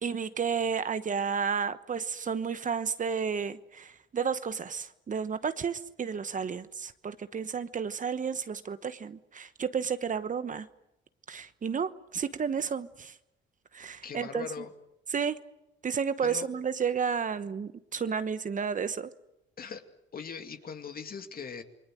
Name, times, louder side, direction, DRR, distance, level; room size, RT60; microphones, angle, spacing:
voice 1, 0.0-10.7 11.3-13.1 13.7-14.5 15.1-15.4 15.8-19.1, right 6 dB, 40° right, 12 dB, 1.1 m, -32 dB
voice 2, 14.0-14.7 16.2-16.5 19.6-19.8 20.1-21.6, left 6 dB, 50° left, 6 dB, 2.5 m, -39 dB
28.0 x 21.5 x 7.7 m, 0.86 s
cardioid pair, 90°, 20 cm